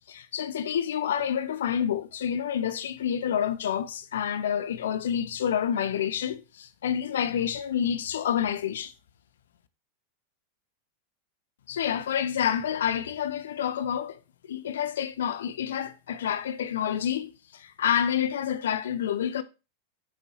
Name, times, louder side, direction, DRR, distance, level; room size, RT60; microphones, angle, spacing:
voice 1, 0.1-8.9 11.7-14.2 14.5-19.4, left 9 dB, 60° left, 0.7 m, -28 dB
7.9 x 6.8 x 2.9 m
figure-of-eight pair, 90°, 0 cm